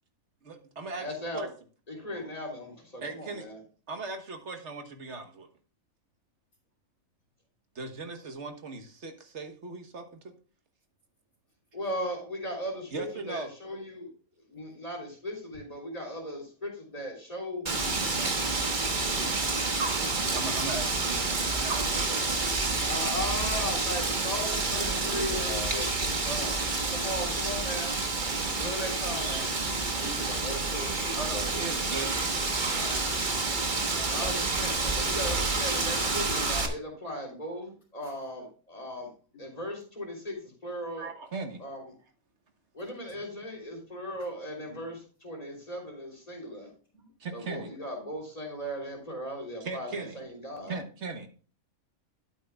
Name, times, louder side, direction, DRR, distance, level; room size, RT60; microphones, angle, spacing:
voice 1, 0.4-1.1 1.3-1.5 3.0-3.5 3.9-5.5 7.7-10.2 12.9-13.5 20.3-22.2 26.2-26.7 31.1-32.3 41.0-41.6 47.2-47.7 49.6-50.2 50.7-51.3, right 3 dB, 55° right, 6 dB, 1.5 m, -38 dB
voice 2, 0.9-1.5 1.9-3.6 11.7-14.1 14.5-18.6 22.8-25.9 26.9-29.5 32.8-33.0 33.9-39.1 39.4-41.1 41.6-41.9 42.7-46.7 47.3-50.7, left 1 dB, 25° left, -1 dB, 3.4 m, -37 dB
Wind, 17.7-36.7, right 3 dB, 35° right, 1.3 m, -29 dB
voice 3, 21.3-22.5 24.8-25.9 30.0-31.7 32.1-32.2 38.0-38.2 39.3-39.4 44.6-44.9 46.9-47.0 50.6-50.8, equal, 65° left, -7 dB, 3.4 m, -42 dB
12.0 x 8.9 x 2.3 m, 0.38 s
omnidirectional pair, 1.5 m